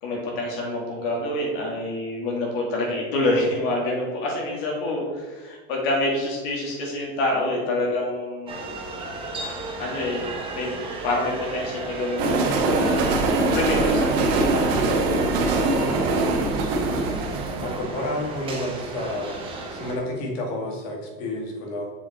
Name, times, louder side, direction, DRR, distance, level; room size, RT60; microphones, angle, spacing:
voice 1, 0.0-8.6 9.8-10.7 11.0-15.1, left 1 dB, 65° left, -2 dB, 2.1 m, -27 dB
sound 1, 8.5-20.0, right 2 dB, 15° right, 0.9 m, -34 dB
sound 2, 12.2-19.2, right 2 dB, 75° right, 1.3 m, -23 dB
voice 2, 17.6-19.4 19.7-21.9, left 1 dB, 80° left, 1 dB, 2.1 m, -30 dB
7.0 x 5.1 x 4.2 m, 1.3 s
cardioid pair, 175°, 31 cm